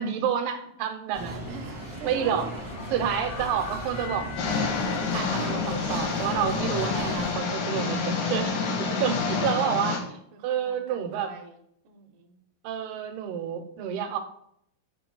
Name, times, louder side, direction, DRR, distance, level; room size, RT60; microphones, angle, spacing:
voice 1, 0.0-1.4 2.0-2.5 2.9-4.3 5.1-11.4 12.6-14.2, right 8 dB, 85° right, 7 dB, 2.9 m, -29 dB
sound 1, 1.1-7.3, right 1 dB, 25° right, 0.6 m, -37 dB
voice 2, 1.5-2.7 8.9-9.5 10.3-11.6 11.8-12.4, right 4 dB, 70° right, 3 dB, 2.3 m, -43 dB
sound 2, 2.1-8.9, left 7 dB, 85° left, 2.9 m, -43 dB
sound 3, 4.4-10.0, left 4 dB, 65° left, 2.5 m, -28 dB
15.0 x 5.8 x 2.3 m, 0.72 s
omnidirectional pair, 4.6 m